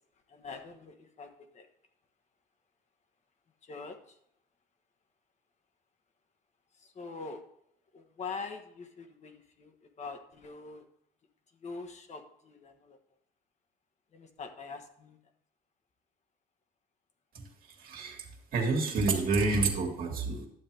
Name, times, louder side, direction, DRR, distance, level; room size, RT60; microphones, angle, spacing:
voice 1, 0.3-1.7 3.6-4.2 6.7-7.4 7.9-10.9 11.5-13.0 14.1-15.2, left 4 dB, 40° left, 6 dB, 1.2 m, -44 dB
voice 2, 17.3-18.3 18.5-20.5, right 3 dB, 60° right, 1 dB, 2.1 m, -29 dB
11.5 x 7.5 x 3.4 m, 0.74 s
cardioid pair, 110°, 17 cm